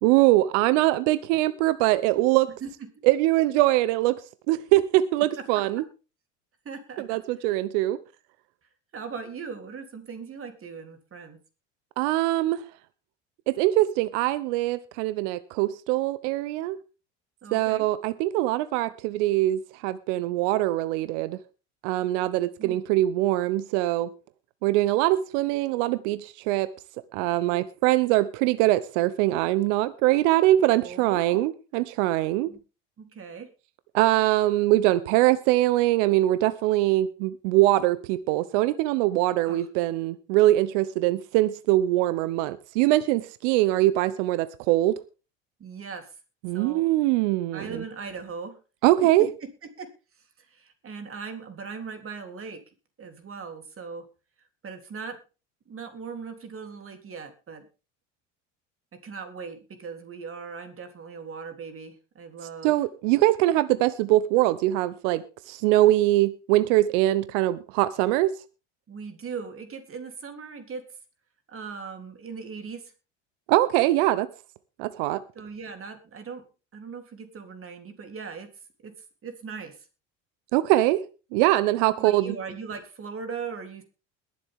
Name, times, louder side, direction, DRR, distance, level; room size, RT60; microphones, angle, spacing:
voice 1, 0.0-2.5 3.0-4.2 4.5-5.8 7.0-8.0 12.0-12.6 13.5-16.8 17.5-21.4 21.8-24.1 24.6-26.7 27.1-32.5 33.9-45.0 46.4-47.8 48.8-49.3 62.6-68.3 73.5-74.3 74.8-75.2 80.5-81.0 81.3-82.4, right 16 dB, 75° right, 15 dB, 0.9 m, -23 dB
voice 2, 6.7-7.5 8.9-11.4 17.4-17.8 22.2-22.8 30.8-31.4 32.5-32.6 33.0-33.5 39.5-39.7 45.6-46.1 46.5-46.8 47.5-48.6 49.0-49.5 49.8-49.9 50.4-52.6 53.0-54.1 54.6-55.2 55.7-57.7 59.0-62.8 68.9-70.9 71.5-72.9 75.4-76.5 76.7-78.5 78.8-78.9 79.2-79.8 81.8-83.8, right 5 dB, 35° right, 6 dB, 3.5 m, -39 dB
21.5 x 7.7 x 3.7 m, 0.33 s
hypercardioid pair, 85°, 37 cm